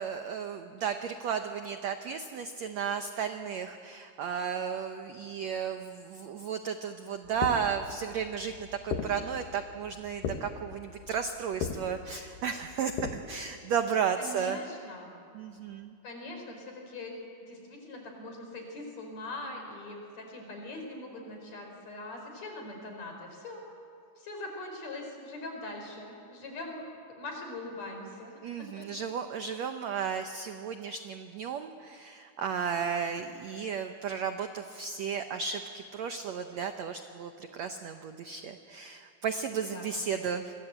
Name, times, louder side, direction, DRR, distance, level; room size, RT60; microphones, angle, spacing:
voice 1, 0.0-14.6 15.3-15.9 28.4-40.5, right 7 dB, 80° right, 7 dB, 1.5 m, -34 dB
sound 1, 7.2-13.2, left 6 dB, 65° left, 3.0 m, -38 dB
voice 2, 14.2-15.1 16.0-17.2 17.5-23.6 24.2-26.9 27.2-28.9 39.7-40.4, left 2 dB, 45° left, 2 dB, 5.4 m, -42 dB
27.5 x 23.0 x 8.2 m, 2.4 s
omnidirectional pair, 4.5 m